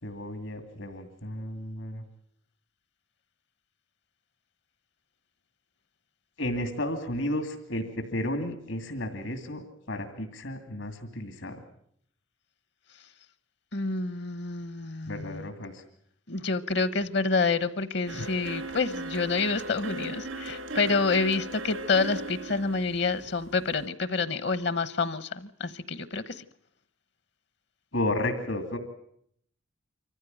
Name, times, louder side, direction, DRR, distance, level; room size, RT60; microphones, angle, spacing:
voice 1, 0.0-2.0 6.4-11.6 15.1-15.8 27.9-28.8, left 1 dB, 80° left, 2.6 m, -33 dB
voice 2, 13.7-15.4 16.3-26.4, left 4 dB, 60° left, 1.0 m, -28 dB
sound 1, 18.1-23.8, right 2 dB, 85° right, 2.0 m, -38 dB
25.0 x 15.0 x 9.2 m
head